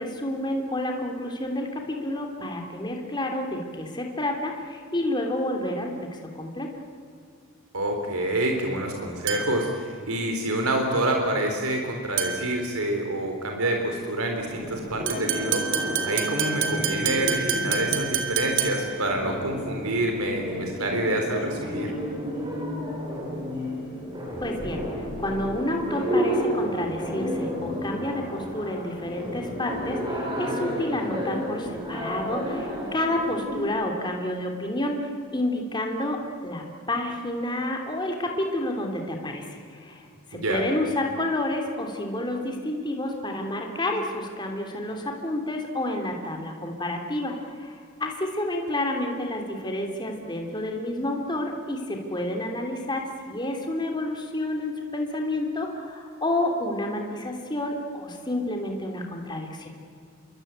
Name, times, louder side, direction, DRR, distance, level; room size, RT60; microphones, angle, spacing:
voice 1, 0.0-5.9 6.3-6.7 24.4-47.3 47.6-59.7, left 1 dB, 20° left, 2 dB, 3.1 m, -29 dB
voice 2, 7.7-21.9 40.3-40.6, right 1 dB, 80° right, 3 dB, 3.7 m, -27 dB
sound 1, 9.3-9.7 12.2-12.6 15.1-19.0, right 7 dB, 60° right, 2.9 m, -28 dB
sound 2, 14.4-33.6, equal, 20° right, 7.0 m, -32 dB
27.5 x 23.5 x 8.9 m, 2.3 s
head